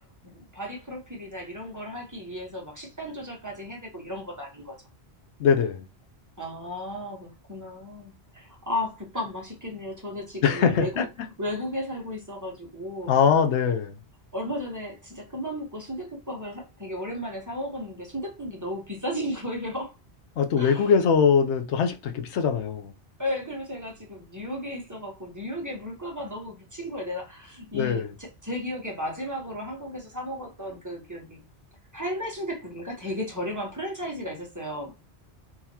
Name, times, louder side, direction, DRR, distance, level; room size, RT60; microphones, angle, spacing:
voice 1, 0.2-4.7 6.4-11.1 11.4-13.1 14.3-19.9 20.6-21.0 23.2-31.4 31.9-35.0, left 1 dB, 15° right, 1.1 m, -34 dB
voice 2, 5.4-5.8 10.4-11.1 13.1-14.0 20.4-22.9 27.7-28.1, left 6 dB, 85° left, 0.9 m, -22 dB
3.9 x 2.9 x 2.7 m
omnidirectional pair, 1.1 m